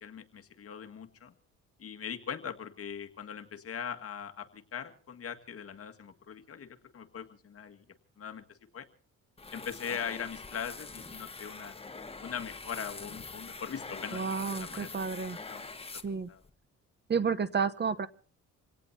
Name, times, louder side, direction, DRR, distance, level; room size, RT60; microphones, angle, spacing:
voice 1, 0.0-1.3 1.8-7.8 8.2-8.9 9.5-11.8 12.2-15.1 15.5-15.7 16.3-16.4, left 7 dB, 50° left, 6 dB, 2.0 m, -41 dB
sound 1, 9.4-16.5, left 3 dB, 20° left, 1.5 m, -44 dB
voice 2, 14.1-15.4 16.0-16.3 17.1-18.1, right 5 dB, 35° right, 13 dB, 1.0 m, -31 dB
27.0 x 17.5 x 2.9 m, 0.43 s
cardioid pair, 90°, 30 cm